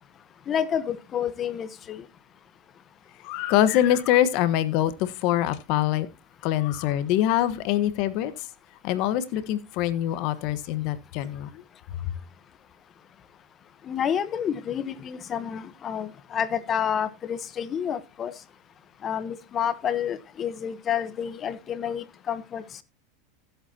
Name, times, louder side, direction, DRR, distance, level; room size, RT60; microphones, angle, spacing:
voice 1, 0.5-2.1 13.8-18.3 19.0-22.8, left 8 dB, 35° left, 1.1 m, -29 dB
voice 2, 3.2-6.1 6.4-8.5 8.8-11.6 12.0-12.1, left 12 dB, 55° left, 1.2 m, -24 dB
16.0 x 8.0 x 2.9 m
hypercardioid pair, 100°, 0 cm